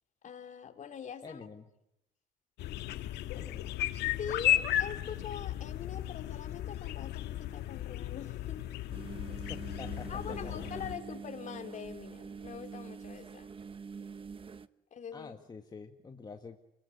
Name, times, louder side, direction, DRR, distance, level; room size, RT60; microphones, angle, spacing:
voice 1, 0.2-1.5 2.9-3.0 4.2-8.6 9.4-9.5 10.1-13.6 14.9-15.4, left 7 dB, 45° left, 6 dB, 3.5 m, -43 dB
voice 2, 1.2-1.7 3.3-3.7 9.5-10.1 10.4-10.7 15.1-16.6, left 4 dB, 25° left, 4 dB, 2.0 m, -47 dB
sound 1, 2.6-11.0, left 12 dB, 80° left, 1.6 m, -35 dB
sound 2, 8.9-14.7, right 5 dB, 30° right, 1.2 m, -45 dB
29.5 x 22.0 x 8.7 m, 0.86 s
cardioid pair, 110°, 17 cm